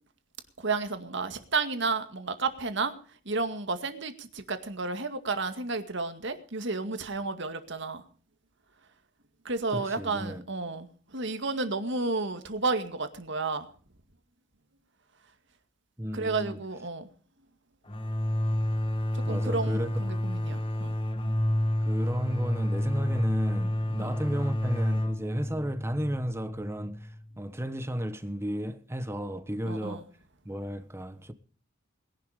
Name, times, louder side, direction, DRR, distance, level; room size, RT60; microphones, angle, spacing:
voice 1, 0.6-2.9 3.3-8.0 9.4-13.7 16.1-17.1 19.1-20.9 24.0-24.1 29.7-30.0, right 3 dB, 65° right, 2.1 m, -32 dB
voice 2, 9.7-10.4 16.0-16.6 19.2-19.9 21.8-30.1 30.4-31.3, equal, 15° right, 1.2 m, -33 dB
sound 1, 17.9-27.4, left 1 dB, 25° left, 1.6 m, -30 dB
21.0 x 11.5 x 5.0 m
head